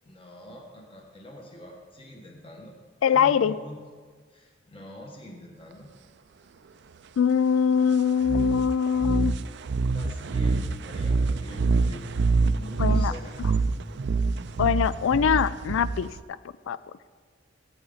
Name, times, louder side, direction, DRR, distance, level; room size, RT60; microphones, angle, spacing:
voice 1, 0.0-2.7 3.1-3.8 4.3-5.9 9.9-12.0 12.5-13.4, left 1 dB, 30° left, 0 dB, 1.4 m, -44 dB
voice 2, 3.0-3.5 7.2-9.4 12.8-13.1 14.6-16.4 16.7-16.8, left 7 dB, 85° left, 16 dB, 0.3 m, -23 dB
sound 1, 8.2-16.2, right 4 dB, 65° right, 0.5 m, -26 dB
15.0 x 8.9 x 4.0 m, 1.5 s
head